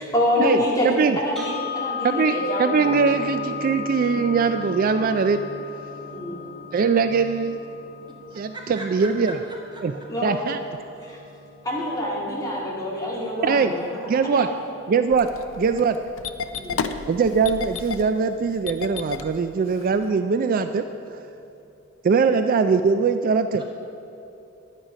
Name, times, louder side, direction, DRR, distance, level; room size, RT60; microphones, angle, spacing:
voice 1, 0.0-0.9 1.2-2.9 3.4-3.6 6.0-6.4 10.1-10.4 11.0-11.2 11.6-14.5 16.5-16.8, left 1 dB, 20° left, -5 dB, 2.2 m, -26 dB
voice 2, 0.8-1.2 2.0-5.4 6.7-7.6 8.3-9.4 9.8-9.9 10.2-10.6 13.4-13.7 14.1-14.5 14.9-15.3 15.6-16.0 17.1-20.8 21.1-21.2 22.0-23.6, right 5 dB, 45° right, 9 dB, 0.3 m, -21 dB
sound 1, 1.4-9.4, left 8 dB, 5° left, 1.5 m, -35 dB
Gong, 2.8-21.8, right 2 dB, 70° right, 1.2 m, -43 dB
voice 3, 8.3-9.9 16.6-16.9 23.6-23.7, right 1 dB, 20° right, 0 dB, 1.0 m, -40 dB
Engine starting, 15.1-20.1, left 5 dB, 75° left, 0.5 m, -32 dB
11.0 x 8.9 x 5.0 m, 2.8 s
head